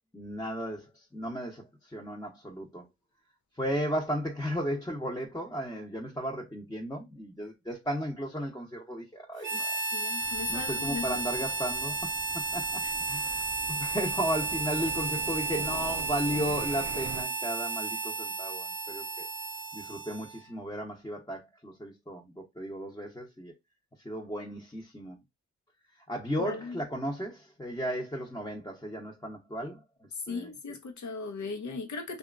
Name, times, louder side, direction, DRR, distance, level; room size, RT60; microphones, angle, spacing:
voice 1, 0.1-2.9 3.6-9.7 10.5-19.3 19.7-23.5 24.0-25.2 26.1-29.8 30.3-30.5, equal, 10° left, 0.8 m, -35 dB
Harmonica, 9.4-20.5, right 3 dB, 40° right, 0.8 m, -33 dB
voice 2, 9.9-11.2 12.8-12.9 26.4-26.8 30.3-32.2, left 4 dB, 70° left, 0.8 m, -37 dB
sound 1, 10.2-17.2, right 5 dB, 80° right, 0.5 m, -45 dB
2.8 x 2.4 x 2.4 m
cardioid pair, 50°, 30 cm